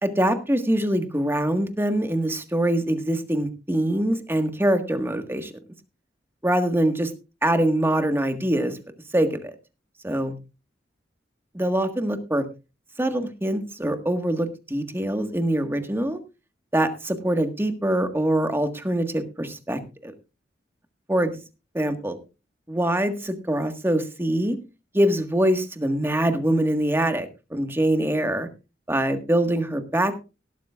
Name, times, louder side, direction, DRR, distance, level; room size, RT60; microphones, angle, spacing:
voice 1, 0.0-5.5 6.4-7.1 7.4-8.8 9.1-9.5 10.0-10.4 11.5-12.5 13.0-16.2 16.7-20.1 21.1-21.3 21.7-22.2 22.7-24.6 24.9-28.5 28.9-30.1, right 1 dB, 15° right, 7 dB, 1.6 m, -24 dB
17.5 x 12.5 x 2.4 m, 0.29 s
head